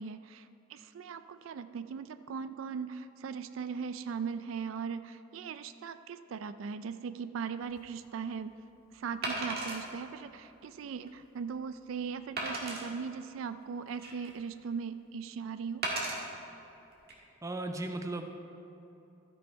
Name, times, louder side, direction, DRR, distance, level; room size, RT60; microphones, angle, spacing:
voice 1, 0.0-8.5 8.9-15.9, right 6 dB, 85° right, 12 dB, 0.4 m, -39 dB
Wood, 7.6-7.8 9.2-9.8 10.4-10.5 11.1-11.2 12.4-12.8 13.6-14.4 15.8-16.2 16.9-17.1, right 2 dB, 50° right, 1.7 m, -35 dB
voice 2, 17.4-18.3, right 2 dB, 15° right, 6 dB, 0.5 m, -36 dB
13.0 x 6.4 x 4.5 m, 2.9 s
head